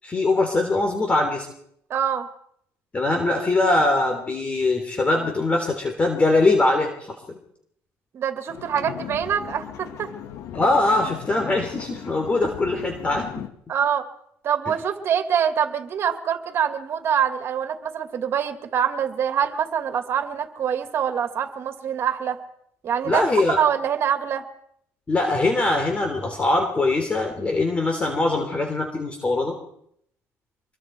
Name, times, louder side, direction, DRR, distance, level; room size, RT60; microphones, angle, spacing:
voice 1, 0.0-1.5 2.9-6.9 7.3-7.4 10.5-13.4 23.1-23.6 25.1-29.6, left 2 dB, 25° left, 4 dB, 3.6 m, -22 dB
voice 2, 1.9-2.3 8.1-10.1 13.7-14.1 14.4-22.4 22.8-23.2 23.6-24.4, right 8 dB, 45° right, 7 dB, 2.6 m, -25 dB
sound 1, 8.5-13.5, left 9 dB, 70° left, 2.0 m, -37 dB
25.5 x 22.5 x 4.8 m, 0.70 s
cardioid pair, 120°, 6 cm